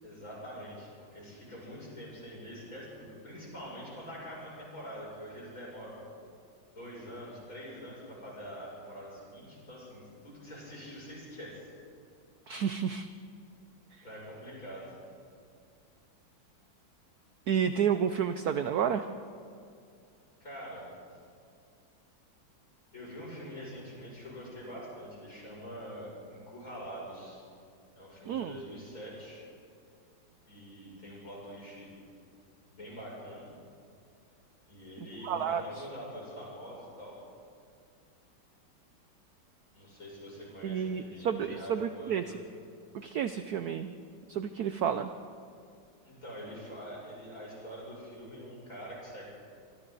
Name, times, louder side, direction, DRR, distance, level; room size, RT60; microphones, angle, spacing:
voice 1, 0.0-6.0 6.7-11.7 14.0-15.0 20.4-20.9 22.9-27.5 28.0-29.4 30.5-31.9 32.7-33.5 34.7-37.2 39.7-42.2 46.0-49.3, equal, 40° left, -5 dB, 7.4 m, -45 dB
voice 2, 12.5-13.1 17.5-19.1 28.3-28.6 35.2-35.8 40.6-42.2 42.9-43.9 44.3-45.1, right 8 dB, 65° right, 10 dB, 1.0 m, -30 dB
25.5 x 25.5 x 4.1 m, 2.4 s
omnidirectional pair, 2.2 m